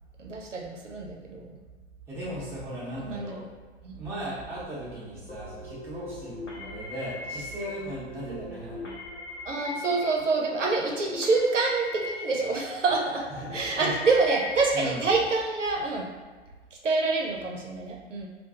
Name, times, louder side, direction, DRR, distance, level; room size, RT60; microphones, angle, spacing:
voice 1, 0.2-1.5 3.0-3.4 3.8-4.0 8.3-8.5 9.5-13.2 13.5-16.1 16.8-18.3, right 3 dB, 85° right, 0 dB, 0.6 m, -27 dB
voice 2, 2.1-3.4 3.9-9.0 13.4-13.9 14.7-15.0, right 1 dB, 5° right, -10 dB, 0.7 m, -37 dB
sound 1, 5.3-14.8, left 2 dB, 80° left, 0.8 m, -40 dB
2.5 x 2.2 x 2.6 m, 1.4 s
figure-of-eight pair, 110°, 36 cm